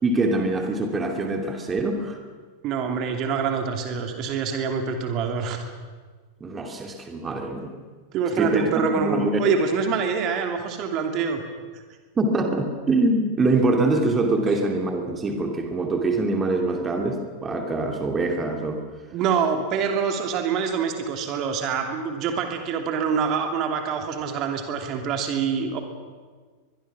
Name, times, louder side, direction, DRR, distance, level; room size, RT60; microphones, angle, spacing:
voice 1, 0.0-2.2 6.4-7.7 8.4-9.5 12.2-18.8, right 2 dB, 20° right, 3 dB, 2.7 m, -24 dB
voice 2, 2.6-5.6 8.1-11.4 19.1-25.8, right 6 dB, 35° right, 5 dB, 2.8 m, -25 dB
23.5 x 22.5 x 6.1 m, 1.5 s
figure-of-eight pair, 90°, 0 cm